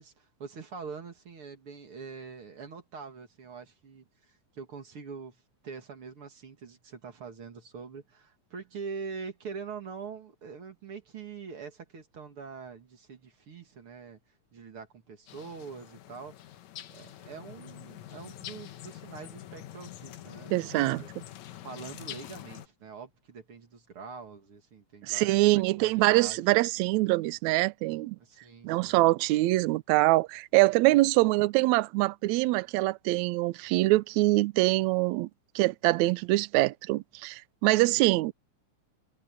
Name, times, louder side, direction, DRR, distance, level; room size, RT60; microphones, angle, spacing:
voice 1, 0.0-14.2 14.5-16.4 16.9-21.2 21.6-26.4 28.2-29.0 38.0-38.2, right 5 dB, 45° right, 2.7 m, -44 dB
sound 1, 15.3-22.7, left 12 dB, 70° left, 2.3 m, -45 dB
voice 2, 20.5-21.0 25.0-28.2 28.6-35.3 35.5-38.3, right 19 dB, 75° right, 1.8 m, -24 dB
omnidirectional pair, 3.5 m